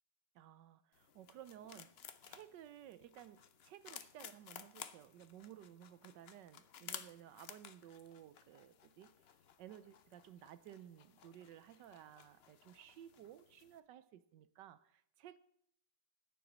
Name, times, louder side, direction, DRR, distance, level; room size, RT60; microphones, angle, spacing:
voice 1, 0.3-2.0 2.2-9.1 9.6-15.4, right 11 dB, 80° right, 1.3 m, -56 dB
sound 1, 0.9-13.8, left 8 dB, 65° left, 0.6 m, -56 dB
9.6 x 7.1 x 8.5 m
omnidirectional pair, 2.0 m